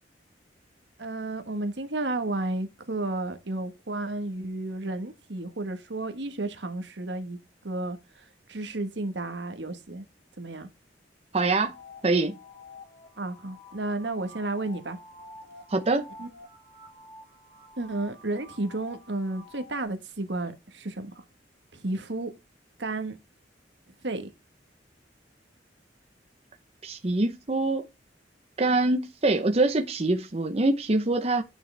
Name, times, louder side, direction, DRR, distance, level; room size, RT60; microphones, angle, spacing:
voice 1, 1.0-7.4 7.6-10.0 10.4-10.7 13.2-15.0 16.2-16.3 17.8-21.2 21.7-22.3 22.8-23.2 24.0-24.3, right 2 dB, 70° right, 1.5 m, -32 dB
voice 2, 11.3-11.7 12.0-12.4 15.7-16.0 26.8-27.8 28.6-31.4, right 2 dB, 35° right, 0.8 m, -24 dB
sound 1, 11.4-19.9, left 2 dB, 35° left, 4.8 m, -49 dB
9.3 x 6.8 x 3.4 m
head